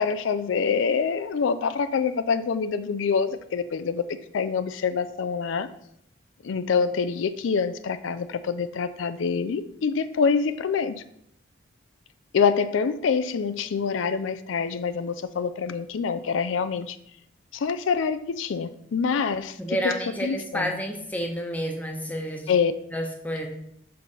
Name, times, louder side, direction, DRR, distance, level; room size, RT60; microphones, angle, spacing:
voice 1, 0.0-4.0 4.3-5.7 6.4-11.0 12.3-17.0 17.5-19.9 20.2-20.7 22.5-22.7, left 5 dB, 80° left, 12 dB, 0.4 m, -26 dB
voice 2, 19.6-22.5 22.9-23.5, equal, 10° left, 2 dB, 0.9 m, -30 dB
6.5 x 4.0 x 5.5 m, 0.72 s
head